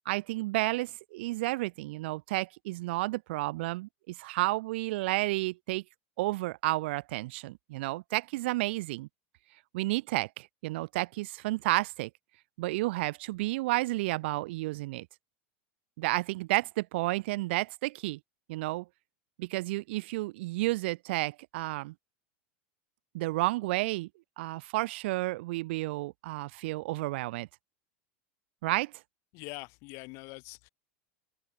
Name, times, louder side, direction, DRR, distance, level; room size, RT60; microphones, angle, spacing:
voice 1, 0.0-5.8 6.2-9.1 9.7-12.1 12.6-15.1 16.0-18.2 18.5-18.9 19.4-21.9 23.1-24.1 24.4-27.5 28.6-28.9, right 20 dB, 65° right, 0.9 m, -31 dB
voice 2, 29.3-30.7, left 29 dB, 45° left, 7.4 m, -43 dB
supercardioid pair, 160°, 7 cm